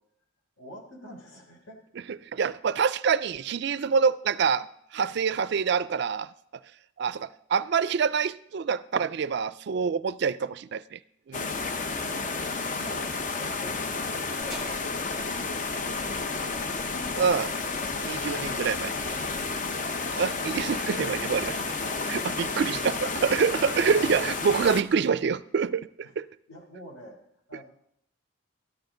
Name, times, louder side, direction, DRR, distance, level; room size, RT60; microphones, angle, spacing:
voice 1, 0.6-1.8 12.0-12.5 12.7-16.8 26.0-26.1 26.5-27.2 27.5-27.6, equal, 80° left, 3.5 m, -47 dB
voice 2, 2.3-4.7 4.9-6.3 7.0-11.0 11.3-11.6 17.2-17.5 18.1-19.0 20.2-21.6 22.0-25.9 26.2-26.3, right 6 dB, 55° right, 0.3 m, -26 dB
sound 1, 11.3-24.8, left 4 dB, 40° left, 0.6 m, -31 dB
sound 2, 14.4-19.6, right 1 dB, ahead, 1.3 m, -48 dB
13.5 x 11.5 x 3.8 m
head